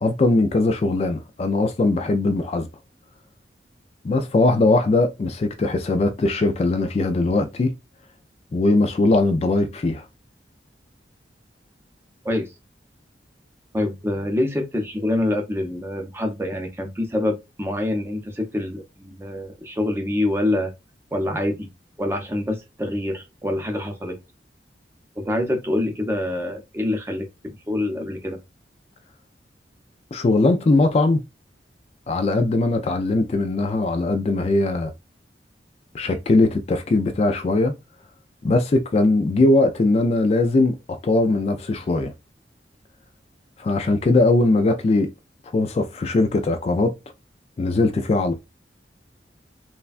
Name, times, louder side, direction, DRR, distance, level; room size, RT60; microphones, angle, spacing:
voice 1, 0.0-2.7 4.0-7.7 8.5-10.1 30.1-31.2 32.1-34.9 35.9-37.7 38.4-40.7 41.0-42.1 43.6-45.1 45.5-46.9 47.6-48.3, left 2 dB, 35° left, 0.3 m, -20 dB
voice 2, 13.7-20.7 21.1-21.7 22.0-24.2 25.2-28.4, left 1 dB, 15° right, 0.6 m, -26 dB
3.3 x 2.2 x 2.4 m
head